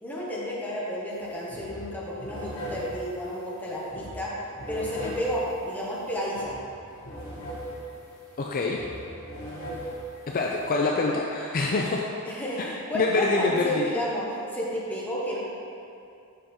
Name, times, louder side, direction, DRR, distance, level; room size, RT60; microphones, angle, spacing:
voice 1, 0.0-4.3 4.7-6.6 12.2-15.4, equal, 10° left, -6 dB, 1.2 m, -31 dB
sound 1, 1.1-1.2 1.5-10.7, right 1 dB, 60° left, 1.5 m, -39 dB
voice 2, 8.4-8.8 10.3-12.0 12.9-13.8, left 3 dB, 40° left, -1 dB, 0.4 m, -25 dB
6.6 x 5.1 x 4.4 m, 2.6 s
head